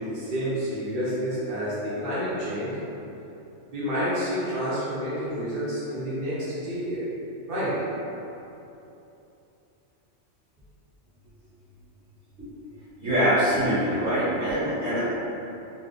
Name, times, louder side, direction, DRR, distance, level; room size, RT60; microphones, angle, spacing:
voice 1, 0.0-2.7 3.7-7.0 7.5-7.8, equal, 45° right, -10 dB, 1.1 m, -29 dB
voice 2, 13.0-15.0, equal, 85° right, -12 dB, 2.0 m, -23 dB
4.0 x 3.0 x 3.3 m, 2.9 s
omnidirectional pair, 1.3 m